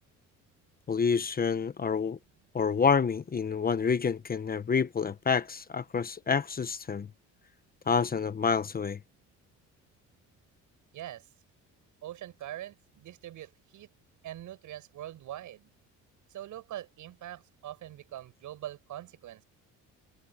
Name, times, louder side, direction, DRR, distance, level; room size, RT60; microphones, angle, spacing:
voice 1, 0.9-2.2 2.5-7.1 7.9-9.0, left 6 dB, 30° left, 1.0 m, -28 dB
voice 2, 10.9-11.3 12.0-13.9 14.2-15.7 16.3-19.4, right 12 dB, 70° right, 6.5 m, -43 dB
cardioid pair, 120°, 31 cm